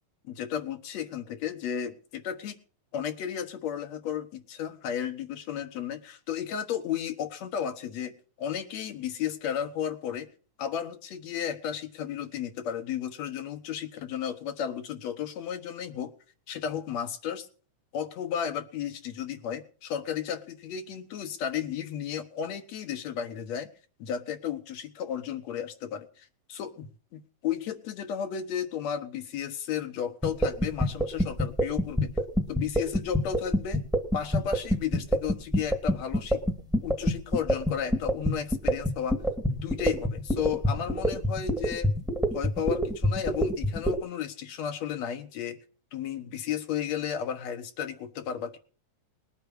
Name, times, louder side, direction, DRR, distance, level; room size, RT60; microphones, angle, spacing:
voice 1, 0.2-2.6 2.9-10.3 10.6-16.1 16.5-17.5 17.9-23.7 24.0-32.1 32.5-33.8 34.1-36.4 36.8-39.2 39.5-41.9 42.3-45.6 45.9-48.6, left 9 dB, 70° left, 8 dB, 2.4 m, -33 dB
sound 1, 30.2-44.0, equal, ahead, 1.4 m, -25 dB
20.0 x 8.7 x 6.4 m, 0.41 s
omnidirectional pair, 3.4 m